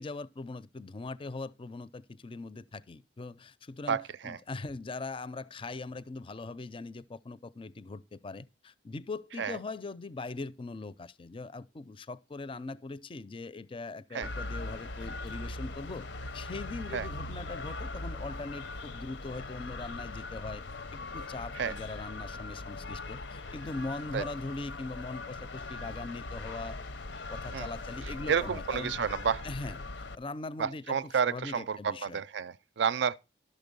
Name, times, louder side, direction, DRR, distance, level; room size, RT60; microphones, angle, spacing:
voice 1, 0.0-16.1 16.3-20.6 20.9-26.8 27.3-28.9 29.4-32.2, left 3 dB, 30° left, 0.4 m, -41 dB
voice 2, 3.9-4.4 9.4-9.6 14.1-14.3 16.9-17.1 21.6-21.7 24.1-24.2 27.5-27.7 28.3-29.5 30.6-33.1, right 7 dB, 70° right, 0.4 m, -30 dB
sound 1, 14.2-30.2, left 2 dB, 80° left, 0.7 m, -40 dB
12.0 x 6.6 x 5.3 m
head